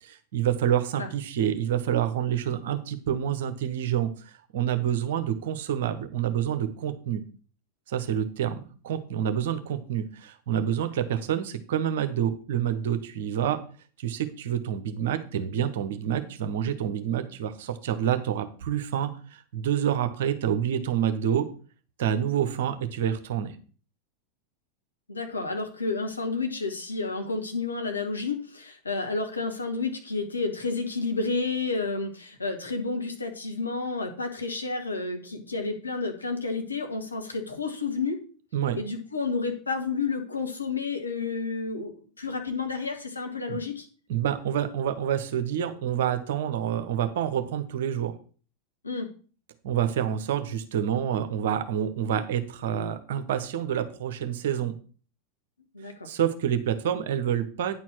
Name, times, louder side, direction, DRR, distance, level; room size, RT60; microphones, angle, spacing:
voice 1, 0.0-7.2 7.9-13.6 14.0-21.5 22.0-23.5 38.5-38.8 43.5-43.6 44.1-48.1 49.6-54.8 56.0-57.8, right 9 dB, 60° right, 10 dB, 1.1 m, -28 dB
voice 2, 25.1-38.2 38.7-41.9 42.2-43.9 48.8-49.1 55.7-56.1, left 4 dB, 85° left, 4 dB, 1.6 m, -30 dB
9.7 x 4.5 x 6.0 m, 0.40 s
figure-of-eight pair, 85°, 0 cm